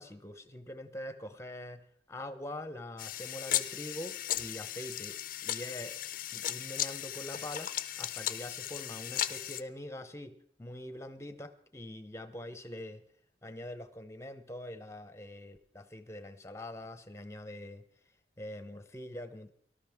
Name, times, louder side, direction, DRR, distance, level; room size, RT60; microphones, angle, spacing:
voice 1, 0.0-5.2 5.4-6.0 6.3-7.7 8.0-10.3 10.6-13.0 13.4-17.8 18.4-19.5, left 1 dB, 15° left, 10 dB, 0.8 m, -44 dB
sound 1, 3.0-9.6, left 12 dB, 50° left, 0.5 m, -36 dB
18.5 x 12.5 x 3.6 m, 0.63 s
head